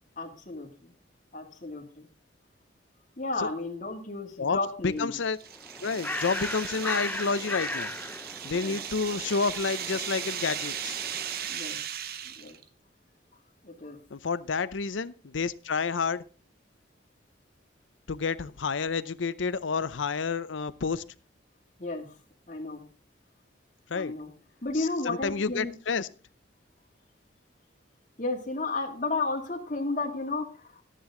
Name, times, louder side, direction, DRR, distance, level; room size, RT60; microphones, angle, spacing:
voice 1, 0.2-0.9 1.3-2.1 3.2-5.1 8.4-8.8 11.5-11.8 12.2-12.6 13.6-14.0 21.8-22.1 22.5-22.8 23.9-24.3 24.6-25.7 28.2-30.8, left 3 dB, 40° left, 1 dB, 2.4 m, -33 dB
voice 2, 4.8-5.4 5.8-7.9 8.4-11.0 14.1-16.2 18.1-21.0 23.9-24.1 24.8-26.1, left 5 dB, 85° left, 16 dB, 0.6 m, -29 dB
sound 1, 5.0-12.6, right 9 dB, 55° right, 0.8 m, -37 dB
Bird, 5.5-11.6, left 2 dB, 10° left, 0.4 m, -38 dB
12.5 x 10.0 x 3.8 m, 0.35 s
head